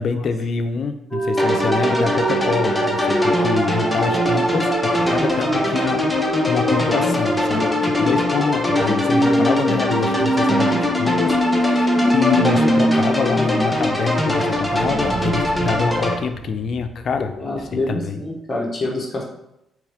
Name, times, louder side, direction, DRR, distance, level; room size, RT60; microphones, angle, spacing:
voice 1, 0.0-17.3 17.9-18.2, left 5 dB, 55° left, 7 dB, 0.5 m, -25 dB
sound 1, 1.1-13.6 13.9-14.0 14.4-17.1, equal, 15° right, 1.3 m, -24 dB
sound 2, 1.4-16.1, left 1 dB, 5° left, 0.8 m, -22 dB
voice 2, 17.4-19.2, left 2 dB, 25° left, -3 dB, 1.0 m, -26 dB
4.7 x 3.1 x 3.5 m, 0.83 s
cardioid pair, 90°, 0 cm